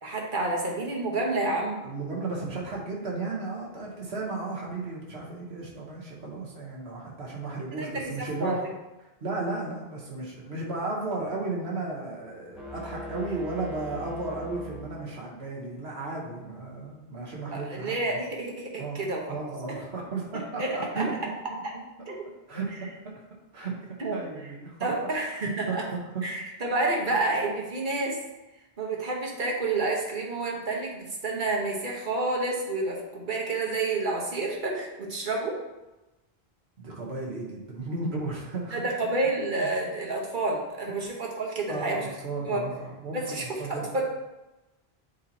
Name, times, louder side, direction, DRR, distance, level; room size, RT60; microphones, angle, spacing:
voice 1, 0.0-1.8 7.7-8.6 17.5-19.4 20.6-21.0 22.1-22.2 24.0-24.2 24.8-25.8 26.2-28.2 28.8-35.6 38.7-42.0 42.4-42.6 43.1-44.0, right 2 dB, 50° right, -1 dB, 1.3 m, -29 dB
voice 2, 1.8-8.6 9.0-18.0 18.8-19.0 19.3-21.3 22.5-22.9 23.5-23.8 24.1-24.9 25.7-26.2 36.8-38.8 39.6-39.7 41.7-44.0, right 3 dB, 90° right, -3 dB, 1.6 m, -34 dB
sound 1, 12.5-15.5, left 1 dB, ahead, 0.9 m, -41 dB
8.2 x 3.0 x 4.2 m, 1.0 s
omnidirectional pair, 1.0 m